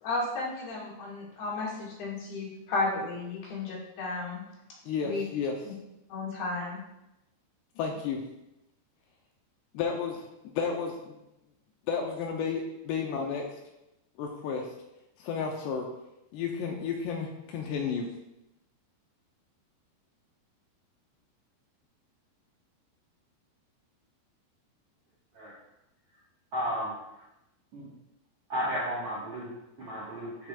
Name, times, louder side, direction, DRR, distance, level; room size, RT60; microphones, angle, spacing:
voice 1, 0.0-4.4 5.0-5.2 5.7-5.8 6.1-6.8, left 3 dB, 65° left, -5 dB, 3.8 m, -33 dB
voice 2, 4.9-5.6 7.8-8.2 9.7-11.1 11.9-13.5 14.2-14.7 15.2-15.9 16.3-18.1, left 6 dB, 80° left, 1 dB, 2.6 m, -32 dB
voice 3, 26.5-27.3 27.7-27.9 28.5-30.5, equal, 65° right, -8 dB, 1.5 m, -34 dB
12.0 x 6.1 x 2.4 m, 0.90 s
omnidirectional pair, 5.2 m